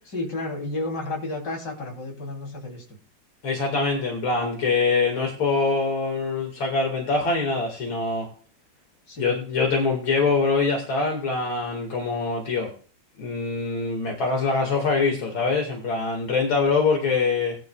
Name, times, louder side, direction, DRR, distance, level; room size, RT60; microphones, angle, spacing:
voice 1, 0.1-3.0 9.1-9.3 17.0-17.1, left 2 dB, 55° left, 0 dB, 3.8 m, -32 dB
voice 2, 3.4-8.3 9.2-12.7 13.2-17.6, left 4 dB, 75° left, 1 dB, 2.8 m, -24 dB
19.5 x 10.5 x 2.3 m, 0.40 s
omnidirectional pair, 2.2 m